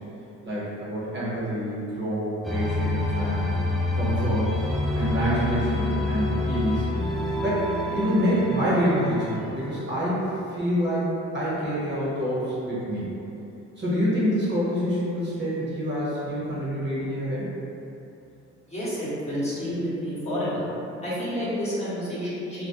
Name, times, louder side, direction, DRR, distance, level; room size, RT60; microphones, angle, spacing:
voice 1, 0.4-3.5 3.9-4.5 4.9-6.9 7.4-7.7 7.9-10.2 10.5-13.1 13.8-17.5, equal, 35° right, -9 dB, 1.0 m, -26 dB
sound 1, 2.4-9.8, left 2 dB, ahead, 0.4 m, -28 dB
voice 2, 18.7-20.6 20.9-22.7, equal, 20° left, -10 dB, 1.1 m, -29 dB
2.8 x 2.7 x 2.8 m, 2.9 s
cardioid pair, 90°, 30 cm